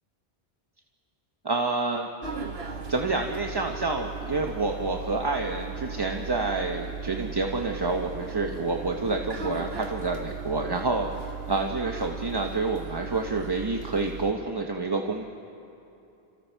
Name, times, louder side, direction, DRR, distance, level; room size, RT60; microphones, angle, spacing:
voice 1, 1.4-2.1 2.9-15.2, right 3 dB, 25° right, 2 dB, 0.8 m, -28 dB
sound 1, 2.2-14.3, right 5 dB, 75° right, 1.5 m, -37 dB
28.5 x 26.5 x 4.5 m, 2.8 s
omnidirectional pair, 1.0 m